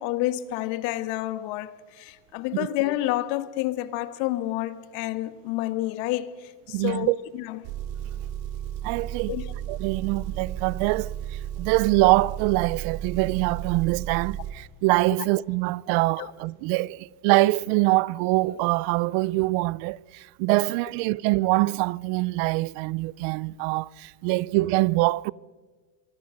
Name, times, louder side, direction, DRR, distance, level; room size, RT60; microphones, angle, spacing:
voice 1, 0.0-7.6 9.3-9.5 16.2-16.3, left 15 dB, 85° left, 1.7 m, -29 dB
voice 2, 6.7-7.2 8.8-9.3 9.7-25.3, right 21 dB, 75° right, 0.6 m, -24 dB
Engine, 7.6-14.5, right 10 dB, 90° right, 2.8 m, -34 dB
25.5 x 23.0 x 6.5 m
cardioid pair, 140°, 48 cm